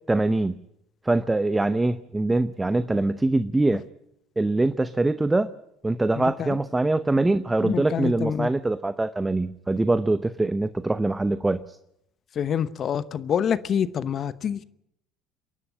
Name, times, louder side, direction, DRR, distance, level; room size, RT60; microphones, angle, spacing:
voice 1, 0.1-0.6 1.0-3.8 4.4-5.5 5.8-11.8, right 2 dB, 15° right, 14 dB, 0.8 m, -23 dB
voice 2, 6.2-6.5 7.6-8.5 12.4-14.6, left 8 dB, 45° left, 16 dB, 0.9 m, -26 dB
27.5 x 11.5 x 9.7 m, 0.78 s
hypercardioid pair, 65°, 0 cm